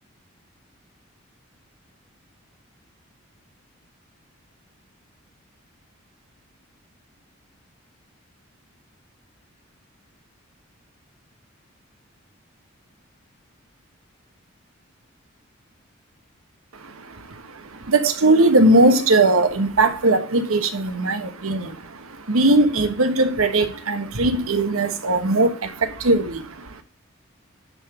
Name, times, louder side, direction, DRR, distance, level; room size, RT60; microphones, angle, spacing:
voice 1, 16.7-26.8, right 2 dB, 85° right, 1.2 m, -20 dB
9.8 x 3.8 x 6.9 m
head